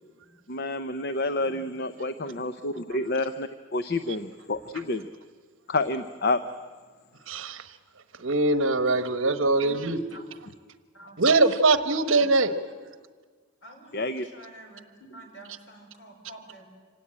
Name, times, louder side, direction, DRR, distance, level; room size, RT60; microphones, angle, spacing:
voice 1, 0.5-5.1 5.7-6.4 13.9-14.3, left 2 dB, 50° left, 11 dB, 0.7 m, -29 dB
voice 2, 7.3-7.7 8.2-10.0 11.2-12.5, right 3 dB, 70° right, 11 dB, 1.2 m, -22 dB
voice 3, 8.5-10.2 10.9-11.5 11.9-12.0 13.6-16.7, right 1 dB, 65° left, 3 dB, 5.0 m, -50 dB
25.5 x 18.0 x 8.8 m, 1.5 s
head